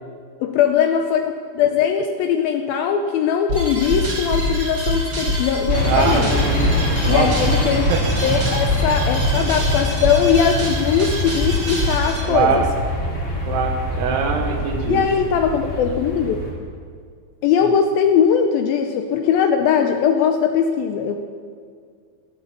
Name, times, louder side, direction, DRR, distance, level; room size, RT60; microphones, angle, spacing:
voice 1, 0.4-6.3 7.1-7.8 8.2-12.6 14.9-16.4 17.4-21.2, left 7 dB, 75° left, 6 dB, 2.2 m, -20 dB
sound 1, 3.5-12.2, equal, 30° right, 3.2 m, -24 dB
sound 2, 5.7-16.5, left 1 dB, 20° left, 3.0 m, -24 dB
voice 2, 5.8-6.8 7.1-7.3 7.9-8.0 12.3-12.7 13.5-15.0, right 6 dB, 80° right, 3 dB, 3.1 m, -22 dB
15.5 x 13.5 x 6.9 m, 2.1 s
omnidirectional pair, 4.7 m